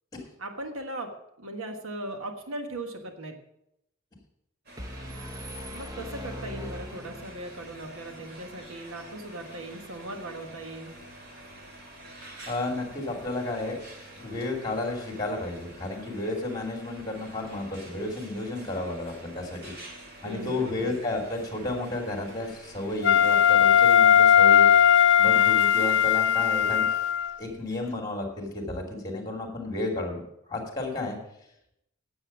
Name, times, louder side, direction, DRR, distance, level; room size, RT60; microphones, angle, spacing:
voice 1, 0.4-1.1 1.4-3.4 5.7-10.9 20.2-20.7, right 1 dB, 85° right, 5 dB, 1.5 m, -38 dB
sound 1, 4.7-24.1, right 1 dB, 50° right, 2.6 m, -47 dB
sound 2, 4.8-7.7, equal, 15° right, 0.9 m, -40 dB
voice 2, 12.5-13.8 14.2-19.7 20.2-24.7 25.2-26.9 27.4-30.2 30.5-31.2, left 2 dB, 20° left, 1 dB, 2.6 m, -32 dB
Wind instrument woodwind instrument, 23.0-27.3, left 9 dB, 60° left, 0.6 m, -18 dB
9.5 x 8.0 x 7.1 m, 0.80 s
head